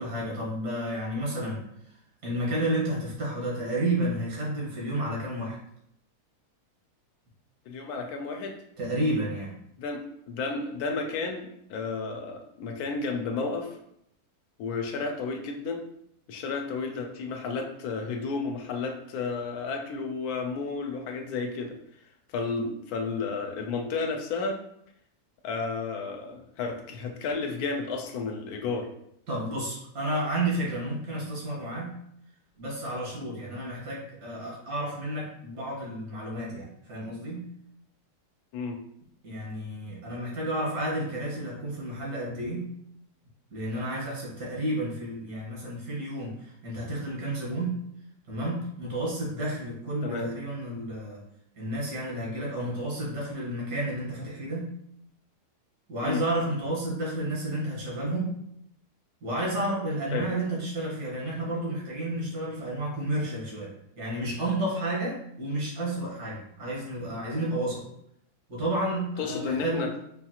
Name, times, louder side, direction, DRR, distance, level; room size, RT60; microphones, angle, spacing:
voice 1, 0.0-1.6 2.2-5.6 8.8-9.5 29.3-32.0 32.6-37.5 39.2-42.7 43.5-47.8 48.3-51.2 51.6-54.7 55.9-58.4 59.2-63.7 64.0-67.8 68.5-69.8, right 1 dB, 90° right, -4 dB, 2.0 m, -31 dB
voice 2, 7.7-8.6 9.8-13.8 14.6-15.8 16.3-21.8 22.3-24.6 25.4-28.9 38.5-38.8 50.0-50.3 56.0-56.2 60.1-60.3 69.2-69.9, left 4 dB, 75° left, 3 dB, 1.1 m, -32 dB
5.1 x 2.4 x 2.8 m, 0.74 s
omnidirectional pair, 1.7 m